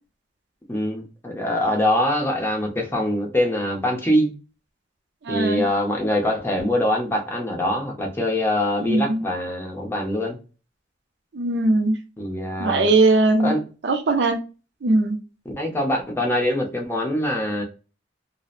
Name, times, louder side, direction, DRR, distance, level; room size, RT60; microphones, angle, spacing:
voice 1, 0.7-4.3 5.3-10.4 12.2-12.9 13.4-13.6 15.5-17.6, left 1 dB, 15° left, 0.6 m, -23 dB
voice 2, 5.2-5.6 8.8-9.2 11.3-12.0 12.6-13.5 13.8-14.4 14.8-15.2, right 2 dB, 65° right, 0.4 m, -19 dB
2.7 x 2.0 x 2.4 m
head